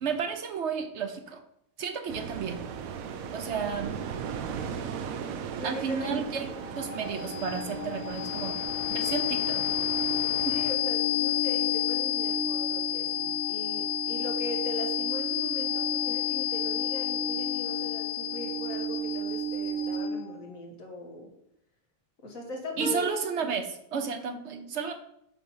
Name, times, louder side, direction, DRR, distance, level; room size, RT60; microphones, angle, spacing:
voice 1, 0.0-1.4 1.8-2.6 3.3-4.0 5.6-6.5 6.8-8.6 8.9-9.7 10.4-10.6 22.8-23.6 23.9-24.9, right 6 dB, 60° right, 6 dB, 0.9 m, -32 dB
sound 1, 2.1-10.7, right 7 dB, 85° right, 1.1 m, -38 dB
voice 2, 5.6-6.2 10.4-21.3 22.2-23.2, left 1 dB, 80° left, 0 dB, 1.9 m, -39 dB
sound 2, 6.5-20.4, left 7 dB, 35° left, 1.0 m, -30 dB
6.0 x 4.4 x 5.5 m, 0.76 s
omnidirectional pair, 1.4 m